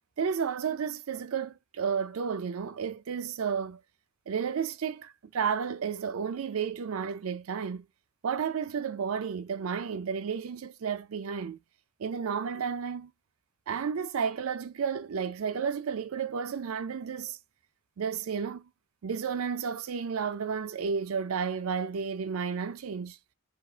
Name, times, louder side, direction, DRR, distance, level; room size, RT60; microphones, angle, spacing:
voice 1, 0.2-3.8 4.3-7.8 8.2-11.6 12.0-13.1 13.7-17.4 18.0-18.7 19.0-23.2, right 6 dB, 90° right, 0.5 m, -32 dB
2.7 x 2.5 x 3.9 m
head